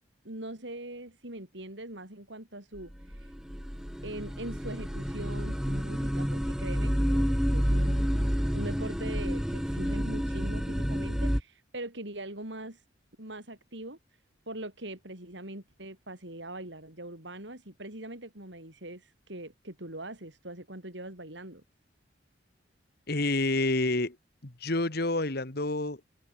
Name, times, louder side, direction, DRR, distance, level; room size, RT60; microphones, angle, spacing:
voice 1, 0.2-3.3 4.0-8.1 8.5-12.8 13.2-14.0 14.5-21.6, right 1 dB, 70° right, 6.5 m, -42 dB
sound 1, 2.8-11.4, equal, 5° right, 1.8 m, -29 dB
voice 2, 23.1-24.2 24.4-26.0, left 2 dB, 55° left, 2.0 m, -28 dB
open air
head